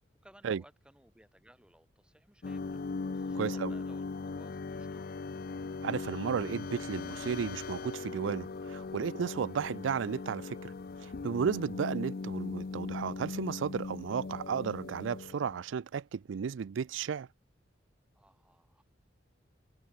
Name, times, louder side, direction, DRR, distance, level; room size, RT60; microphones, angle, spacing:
voice 1, 0.2-2.8 3.1-5.2 9.4-9.6 18.1-18.8, right 1 dB, 5° right, 2.7 m, -60 dB
sound 1, 2.4-15.6, left 4 dB, 55° left, 0.5 m, -39 dB
voice 2, 3.4-3.7 5.8-10.7 11.0-17.3, right 6 dB, 90° right, 0.4 m, -34 dB
head